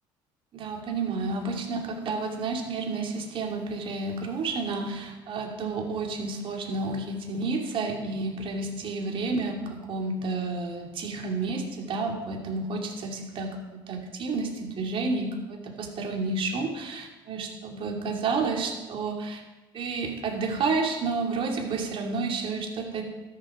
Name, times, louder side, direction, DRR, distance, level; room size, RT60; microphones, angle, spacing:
voice 1, 0.5-19.4 19.7-23.0, right 3 dB, 50° right, 1 dB, 2.6 m, -30 dB
12.5 x 7.5 x 5.9 m, 1.2 s
supercardioid pair, 80°, 11 cm